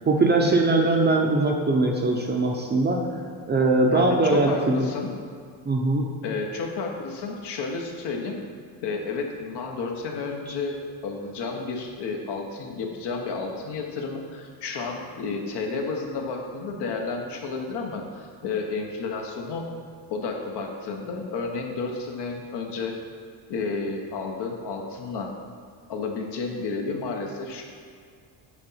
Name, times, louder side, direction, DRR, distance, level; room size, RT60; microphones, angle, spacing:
voice 1, 0.1-3.0 3.5-4.8 5.7-6.1, right 2 dB, 20° right, 1 dB, 0.7 m, -21 dB
voice 2, 3.9-5.1 6.2-8.4 8.8-10.8 11.0-19.7 20.1-23.0 23.5-25.3 25.9-27.6, left 4 dB, 60° left, 2 dB, 1.2 m, -31 dB
8.2 x 4.0 x 5.6 m, 2.2 s
cardioid pair, 145°, 46 cm